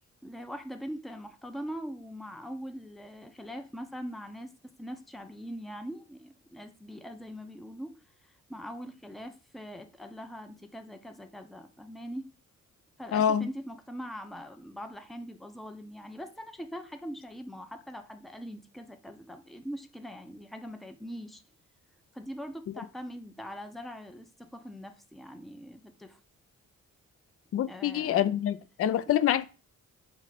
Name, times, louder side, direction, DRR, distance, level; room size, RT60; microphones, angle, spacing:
voice 1, 0.2-4.5 4.8-7.9 8.5-12.2 13.0-21.4 22.1-26.2 27.7-28.3, equal, ahead, 0.6 m, -42 dB
voice 2, 13.1-13.5 27.5-29.5, left 10 dB, 45° left, 0.4 m, -26 dB
4.8 x 2.1 x 4.1 m
supercardioid pair, 55°, 34 cm